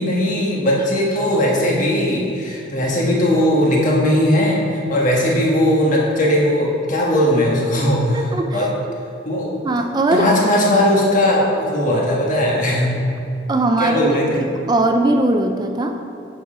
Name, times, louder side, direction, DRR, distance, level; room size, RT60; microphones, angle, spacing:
voice 1, 0.0-8.3 8.5-8.7 9.2-9.5 10.1-12.9 13.8-14.4, left 1 dB, 45° left, -3 dB, 1.4 m, -18 dB
voice 2, 8.1-8.7 9.6-10.3 13.5-16.0, right 2 dB, 20° right, 5 dB, 0.3 m, -20 dB
7.7 x 5.5 x 5.1 m, 2.7 s
head